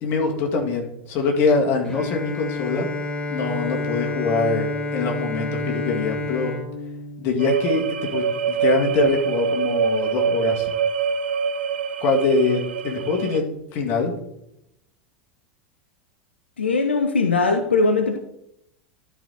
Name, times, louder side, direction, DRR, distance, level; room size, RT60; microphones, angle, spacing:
voice 1, 0.0-2.9 3.3-6.5 7.2-10.7 12.0-13.4 13.7-14.1, left 4 dB, 40° left, 2 dB, 1.9 m, -23 dB
Bowed string instrument, 1.8-7.9, left 2 dB, 15° left, 1.9 m, -29 dB
sound 1, 7.4-13.4, right 6 dB, 70° right, 0.5 m, -24 dB
voice 2, 16.6-18.2, left 3 dB, 75° left, 6 dB, 0.7 m, -20 dB
11.5 x 4.9 x 4.1 m, 0.80 s
figure-of-eight pair, 80°, 6 cm